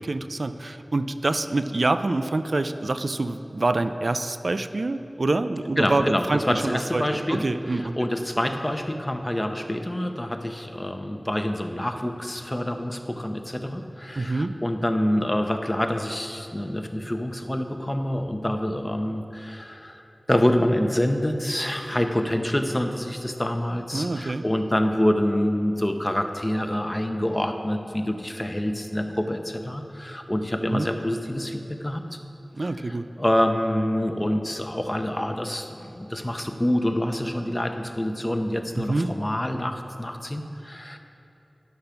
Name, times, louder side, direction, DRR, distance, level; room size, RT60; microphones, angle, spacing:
voice 1, 0.0-7.9 14.2-14.5 23.9-24.4 30.7-30.9 32.6-33.1 38.8-39.1, right 2 dB, 70° right, 10 dB, 0.4 m, -26 dB
voice 2, 5.8-20.0 20.3-32.0 32.6-41.0, left 1 dB, 25° left, 6 dB, 0.8 m, -26 dB
10.5 x 6.6 x 5.8 m, 2.9 s
wide cardioid pair, 45°, 0 cm